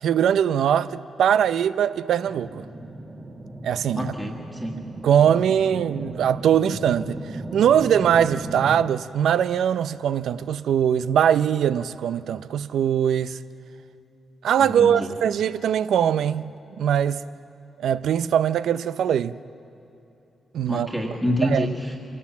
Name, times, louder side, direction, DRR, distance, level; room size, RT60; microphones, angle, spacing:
voice 1, 0.0-2.6 3.6-4.1 5.0-7.2 7.5-13.4 14.4-17.2 17.8-19.3 20.5-20.9 21.4-21.7, right 9 dB, 85° right, 0.5 m, -21 dB
sound 1, 2.3-8.8, right 2 dB, 25° right, 1.2 m, -36 dB
voice 2, 3.9-4.8 14.6-15.1 20.7-22.0, equal, ahead, 1.5 m, -27 dB
25.0 x 17.5 x 7.2 m
wide cardioid pair, 155°, 0 cm